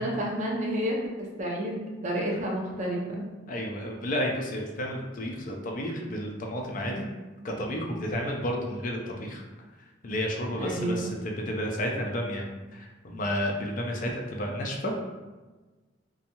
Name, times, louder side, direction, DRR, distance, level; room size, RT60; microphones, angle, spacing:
voice 1, 0.0-3.3 10.6-11.1, right 1 dB, 40° right, -1 dB, 0.5 m, -30 dB
voice 2, 3.5-7.0 7.4-9.4 10.0-12.4 12.7-15.1, equal, 45° left, 0 dB, 0.4 m, -31 dB
2.6 x 2.2 x 2.8 m, 1.2 s
head